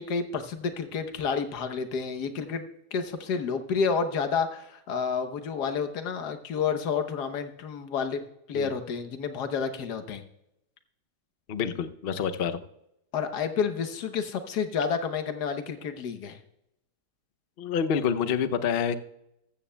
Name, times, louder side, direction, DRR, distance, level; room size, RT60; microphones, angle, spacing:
voice 1, 0.0-8.2 8.5-10.2 13.1-16.4, left 6 dB, 90° left, 9 dB, 1.5 m, -30 dB
voice 2, 11.5-12.6 17.6-19.0, left 7 dB, 55° left, 10 dB, 0.6 m, -27 dB
14.0 x 14.0 x 2.2 m, 0.82 s
omnidirectional pair, 1.7 m